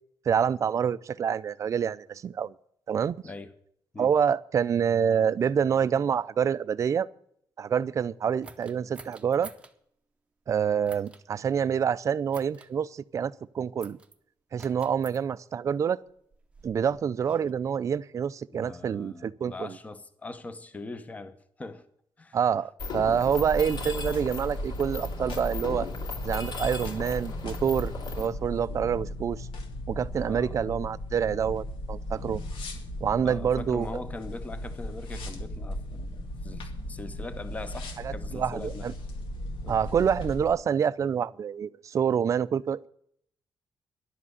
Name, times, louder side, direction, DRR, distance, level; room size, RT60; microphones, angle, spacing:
voice 1, 0.3-2.5 2.9-3.2 4.0-7.1 7.6-9.5 10.5-14.0 14.5-16.0 16.6-19.8 22.3-25.9 26.2-29.5 29.9-32.4 33.0-34.0 38.0-38.9 39.7-42.9, right 7 dB, 35° right, 0.4 m, -27 dB
sound 1, 8.4-9.7 10.8-11.2 12.3-12.7 13.8-14.2 14.6-15.2 16.1-17.5, right 3 dB, 15° right, 0.7 m, -49 dB
voice 2, 18.5-21.8 22.2-22.4 23.3-23.4 30.2-30.6 33.2-38.9 39.6-39.8, left 3 dB, 15° left, 0.9 m, -41 dB
Mechanisms, 22.8-28.3, left 3 dB, 60° left, 2.7 m, -36 dB
sound 2, 23.3-40.5, left 1 dB, 75° left, 2.2 m, -37 dB
11.5 x 7.6 x 9.5 m
wide cardioid pair, 180°, 9 cm